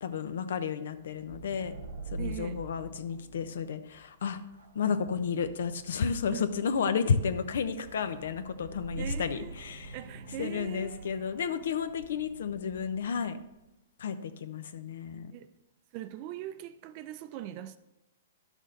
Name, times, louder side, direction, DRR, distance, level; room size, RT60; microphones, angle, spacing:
voice 1, 0.0-1.7 2.1-4.4 4.7-10.0 10.4-13.4 14.0-15.3, left 6 dB, 75° left, 0.8 m, -32 dB
sound 1, 0.9-13.5, right 3 dB, 85° right, 1.2 m, -45 dB
voice 2, 2.2-2.6 4.8-4.9 6.3-6.5 9.0-9.5 9.9-11.6 15.3-15.5 15.9-17.8, right 12 dB, 35° right, 0.5 m, -41 dB
11.0 x 6.3 x 3.9 m
hypercardioid pair, 155°, 0 cm